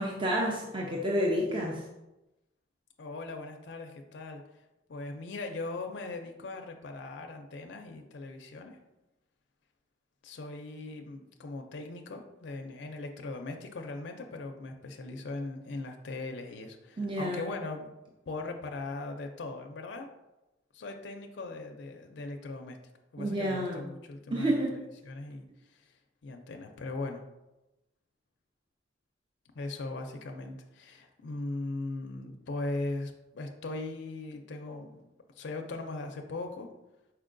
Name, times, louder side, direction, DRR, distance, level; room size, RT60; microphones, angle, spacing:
voice 1, 0.0-1.9 17.0-17.5 23.2-23.8 24.3-24.8, equal, 25° right, -2 dB, 0.5 m, -30 dB
voice 2, 3.0-4.4 4.9-8.8 10.2-17.9 18.3-20.1 20.7-22.8 23.1-25.9 26.2-27.2 29.5-35.0 35.4-36.7, left 2 dB, 70° left, 4 dB, 0.4 m, -39 dB
4.5 x 4.4 x 2.5 m, 0.96 s
head